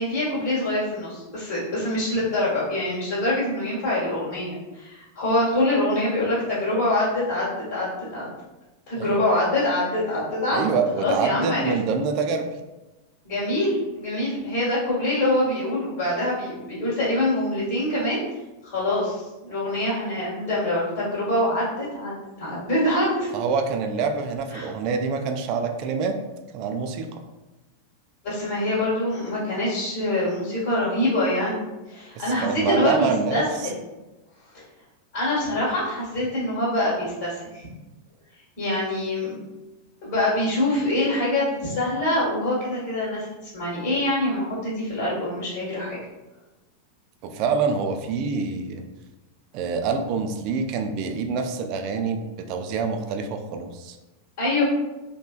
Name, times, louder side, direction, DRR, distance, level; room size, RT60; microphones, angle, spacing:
voice 1, 0.0-8.3 8.9-11.6 13.2-18.2 18.6-23.3 24.5-24.7 28.2-33.8 34.5-34.6 35.1-37.7 38.6-39.3 40.0-43.3 43.5-46.0 54.4-54.6, left 1 dB, 45° left, -8 dB, 1.2 m, -25 dB
voice 2, 9.0-9.3 10.5-12.5 23.3-26.2 26.5-27.2 32.2-33.7 47.2-48.8 49.5-52.2 52.5-54.0, right 5 dB, 40° right, 5 dB, 0.3 m, -26 dB
3.0 x 2.2 x 2.4 m, 1.1 s
figure-of-eight pair, 90°, 0 cm